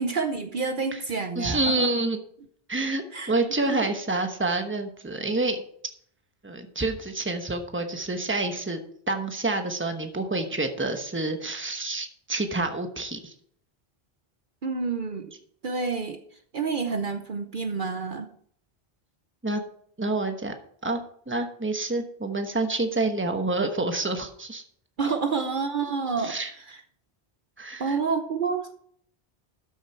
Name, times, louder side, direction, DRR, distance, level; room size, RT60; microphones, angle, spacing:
voice 1, 0.0-1.9 3.1-3.3 3.6-3.9 14.6-15.3 15.6-16.2 16.5-18.3 25.0-26.8 27.8-28.7, right 5 dB, 55° right, 6 dB, 0.9 m, -29 dB
voice 2, 1.4-2.2 2.7-5.6 6.4-8.8 9.1-13.3 19.4-19.6 20.0-20.5 20.8-21.0 21.3-24.6 26.2-26.5 27.6-28.0, right 2 dB, 10° right, 6 dB, 1.1 m, -28 dB
12.5 x 6.4 x 4.5 m, 0.63 s
omnidirectional pair, 1.1 m